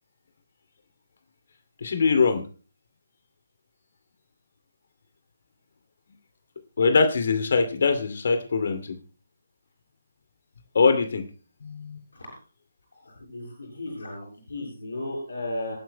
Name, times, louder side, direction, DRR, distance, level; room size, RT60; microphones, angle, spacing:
voice 1, 1.8-2.4 6.8-9.0 10.7-11.2 11.6-12.0, left 4 dB, 55° left, 8 dB, 2.4 m, -22 dB
voice 2, 13.0-15.8, left 1 dB, 70° left, -3 dB, 7.0 m, -35 dB
27.0 x 9.2 x 2.2 m, 0.37 s
figure-of-eight pair, 145°, 0 cm